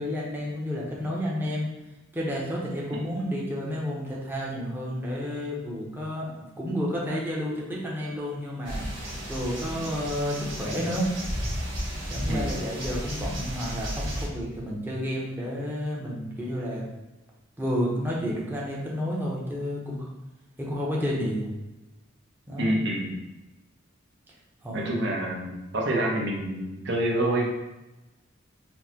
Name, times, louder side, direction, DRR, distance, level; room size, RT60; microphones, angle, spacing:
voice 1, 0.0-1.7 2.1-8.9 9.3-11.1 12.1-16.8 17.6-20.1 20.6-21.5 22.5-22.8 24.6-25.0, equal, 10° right, -4 dB, 0.6 m, -31 dB
sound 1, 8.6-14.3, equal, 85° right, 1.3 m, -33 dB
voice 2, 22.6-23.1 24.7-27.5, right 1 dB, 65° right, -2 dB, 0.8 m, -27 dB
4.5 x 2.1 x 2.7 m, 1.0 s
head